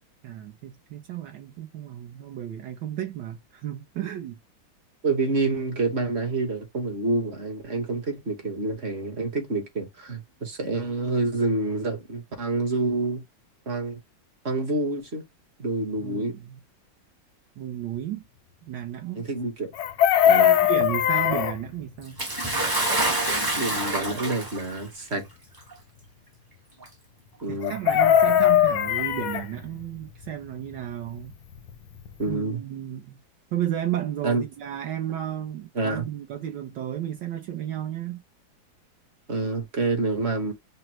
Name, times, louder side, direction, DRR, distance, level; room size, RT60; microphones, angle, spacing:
voice 1, 0.2-4.3 16.0-16.6 17.6-18.2 18.7-19.2 20.3-22.2 27.5-31.3 32.3-33.2 33.5-38.2, right 11 dB, 70° right, 1.2 m, -33 dB
voice 2, 5.0-13.2 13.7-14.0 14.4-15.2 15.6-16.3 19.1-19.7 20.2-20.6 23.6-25.3 27.4-27.8 32.2-32.6 34.2-34.4 35.7-36.1 39.3-40.5, right 2 dB, 40° right, 1.0 m, -27 dB
Chicken rooster, 19.7-21.6 27.6-29.5 31.7-31.8 32.1-32.3, left 11 dB, 90° left, 1.5 m, -20 dB
Bathtub (filling or washing) / Splash splatter, 22.2-24.8 25.7-25.8 26.8-26.9, right 2 dB, 25° right, 0.4 m, -26 dB
6.0 x 2.0 x 2.9 m
omnidirectional pair, 2.2 m